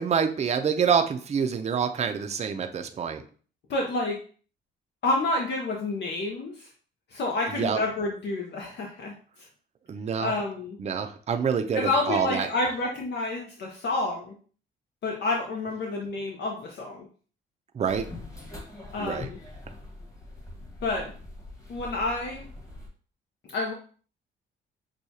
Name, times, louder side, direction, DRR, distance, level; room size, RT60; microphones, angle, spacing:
voice 1, 0.0-3.2 7.5-7.8 9.9-10.3 10.8-12.5 17.7-18.1 19.0-19.3, right 7 dB, 35° right, 6 dB, 0.5 m, -26 dB
voice 2, 3.7-4.2 5.0-6.7 7.1-9.1 10.2-10.8 11.7-14.3 15.0-17.0 18.9-19.4 20.8-21.1 21.7-22.5 23.5-23.7, left 2 dB, 60° left, 0 dB, 0.8 m, -29 dB
sound 1, 17.8-22.9, left 2 dB, 15° left, 1.5 m, -43 dB
6.2 x 2.3 x 2.7 m, 0.42 s
cardioid pair, 90°, 20 cm